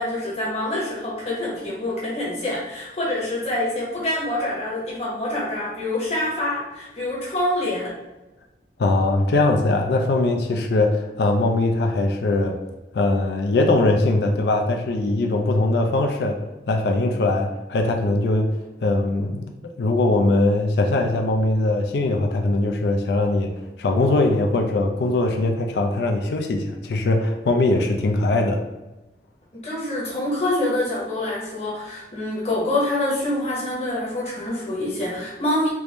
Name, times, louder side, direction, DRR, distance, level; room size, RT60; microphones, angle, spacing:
voice 1, 0.0-7.9 29.6-35.7, left 1 dB, 35° left, -6 dB, 1.0 m, -26 dB
voice 2, 8.8-12.6 12.9-16.4 16.7-18.5 18.8-19.5 19.8-23.5 23.8-28.6, left 2 dB, 70° left, 3 dB, 0.4 m, -21 dB
3.5 x 2.5 x 3.0 m, 1.0 s
head